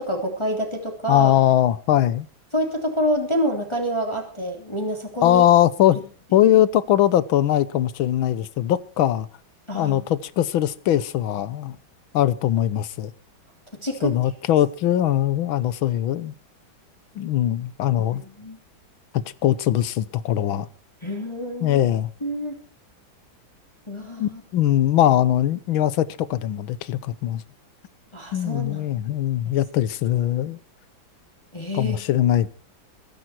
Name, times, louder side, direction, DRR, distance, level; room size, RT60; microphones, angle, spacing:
voice 1, 0.0-1.3 2.5-5.4 9.7-10.0 13.8-14.1 18.1-18.6 21.0-21.8 22.2-22.6 23.9-24.4 28.1-29.2 29.4-29.6 31.5-32.0, equal, 15° left, 3.1 m, -27 dB
voice 2, 1.1-2.3 5.2-6.0 6.3-9.3 9.7-11.8 12.1-13.1 14.0-16.3 17.1-18.2 19.1-20.7 21.6-22.1 24.2-27.4 28.3-30.6 31.7-32.5, left 12 dB, 90° left, 1.7 m, -21 dB
22.5 x 10.5 x 4.5 m
omnidirectional pair, 2.2 m